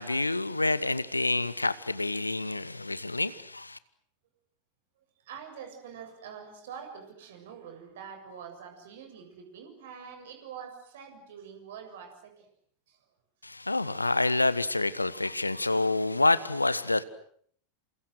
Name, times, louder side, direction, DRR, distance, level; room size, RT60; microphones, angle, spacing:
voice 1, 0.0-3.8 13.4-17.0, left 2 dB, 85° left, 1.3 m, -27 dB
voice 2, 5.2-12.5 12.9-13.0, right 7 dB, 55° right, 7.5 m, -45 dB
29.0 x 28.0 x 6.6 m
figure-of-eight pair, 90°, 0 cm